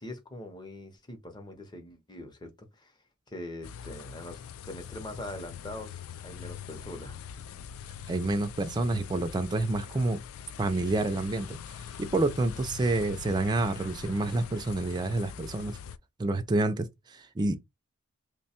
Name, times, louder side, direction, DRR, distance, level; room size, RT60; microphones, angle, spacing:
voice 1, 0.0-2.9 3.3-7.2, left 1 dB, 20° left, 0.7 m, -43 dB
sound 1, 3.6-16.0, left 8 dB, 80° left, 0.3 m, -43 dB
voice 2, 8.1-10.2 10.6-11.6 12.0-15.8 16.2-17.5, right 2 dB, 20° right, 0.3 m, -28 dB
3.1 x 2.2 x 4.2 m
head